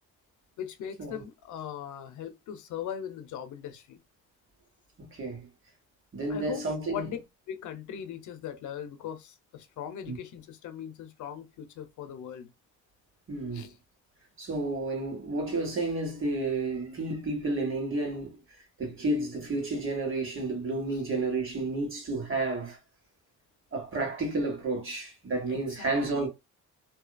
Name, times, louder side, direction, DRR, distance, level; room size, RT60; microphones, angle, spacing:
voice 1, 0.6-4.0 6.3-7.2 7.5-12.5 13.5-13.7 20.9-21.0 25.5-26.3, left 9 dB, 75° left, 0.6 m, -40 dB
voice 2, 5.0-5.5 6.1-7.1 10.1-10.2 13.3-13.7 14.4-18.4 18.8-22.8 23.7-26.3, right 2 dB, 45° right, 1.5 m, -31 dB
2.7 x 2.3 x 2.2 m
cardioid pair, 90°, 30 cm